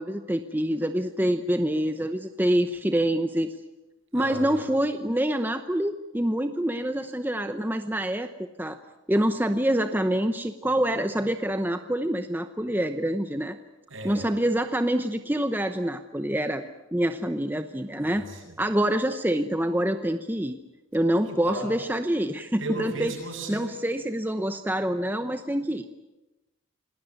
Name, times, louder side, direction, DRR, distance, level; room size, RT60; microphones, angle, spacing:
voice 1, 0.0-3.5 4.1-8.8 9.1-13.6 14.0-16.6 16.9-18.2 18.6-20.6 20.9-23.1 23.5-25.9, right 1 dB, 10° right, 8 dB, 0.9 m, -26 dB
voice 2, 4.1-4.7 13.9-14.2 18.0-18.6 21.2-21.7 22.6-23.7, right 2 dB, 65° right, 2 dB, 7.8 m, -35 dB
27.5 x 19.0 x 9.6 m, 1.0 s
head